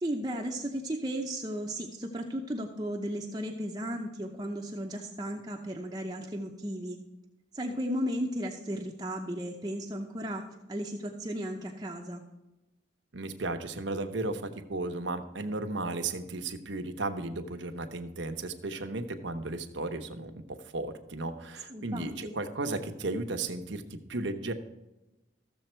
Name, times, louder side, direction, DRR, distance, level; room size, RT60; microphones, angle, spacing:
voice 1, 0.0-7.0 7.5-10.4 10.7-12.2 21.7-22.4, equal, 20° right, 1 dB, 0.7 m, -35 dB
voice 2, 13.1-20.4 20.7-23.8 24.1-24.5, right 2 dB, 85° right, 7 dB, 1.0 m, -34 dB
14.0 x 7.1 x 4.5 m, 1.0 s
head